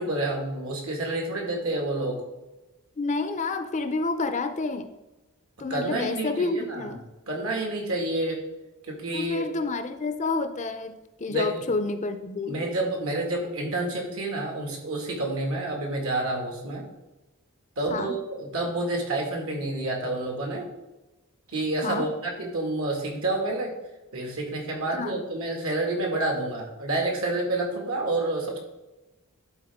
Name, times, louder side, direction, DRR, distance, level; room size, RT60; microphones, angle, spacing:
voice 1, 0.0-2.2 5.7-7.0 7.3-8.4 8.9-9.5 11.3-11.6 12.5-16.8 17.8-20.7 21.5-23.7 24.1-28.6, right 2 dB, 70° right, 1 dB, 2.0 m, -29 dB
voice 2, 3.0-4.9 5.6-7.0 9.1-12.6 17.9-18.1 21.8-22.1 24.9-25.1, left 3 dB, 35° left, 9 dB, 0.5 m, -29 dB
11.5 x 4.0 x 3.5 m, 1.1 s
head